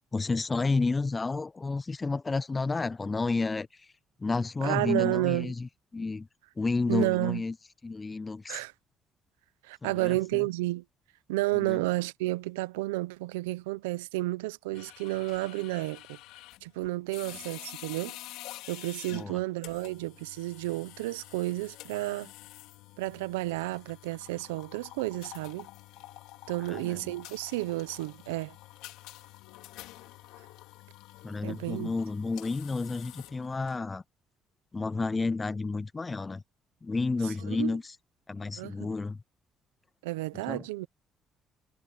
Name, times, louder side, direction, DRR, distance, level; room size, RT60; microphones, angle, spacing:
voice 1, 0.1-3.7 4.2-6.3 6.6-7.5 7.8-8.6 9.8-10.4 11.5-11.8 19.1-19.4 26.7-27.1 31.2-34.0 34.7-36.4 36.8-37.8 38.3-39.2 40.5-40.6, left 3 dB, 30° left, 0.5 m, -31 dB
voice 2, 4.6-5.5 6.9-7.4 8.5-8.7 9.6-10.8 11.3-16.2 16.6-18.2 18.7-22.3 23.0-25.7 26.5-28.6 31.4-31.9 37.2-37.8 38.6-38.9 40.0-40.9, right 19 dB, 90° right, 0.9 m, -31 dB
sound 1, 14.7-33.8, left 18 dB, 80° left, 4.8 m, -48 dB
hypercardioid pair, 60°, 0 cm